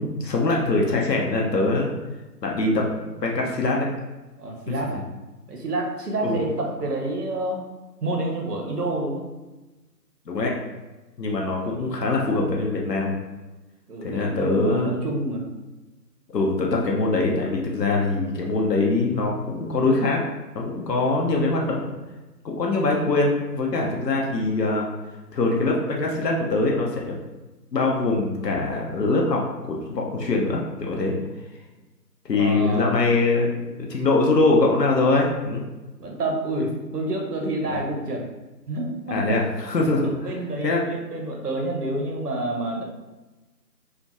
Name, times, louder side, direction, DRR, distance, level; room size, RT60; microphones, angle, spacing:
voice 1, 0.0-1.9 2.4-3.9 4.7-5.0 6.2-6.4 10.3-10.5 11.2-13.1 14.0-14.9 16.3-20.2 20.5-21.9 22.4-24.9 25.3-27.2 27.7-31.1 32.2-33.5 33.8-35.6 37.7-37.8 39.1-40.1 40.6-40.8, left 3 dB, 75° left, -1 dB, 0.6 m, -23 dB
voice 2, 4.4-5.0 5.5-7.6 8.0-9.3 13.9-15.5 24.3-24.4 32.3-32.9 36.0-38.3 38.7-39.4 40.2-42.8, right 2 dB, 65° right, 1 dB, 0.7 m, -28 dB
2.7 x 2.2 x 2.2 m, 1.1 s
figure-of-eight pair, 170°, 50 cm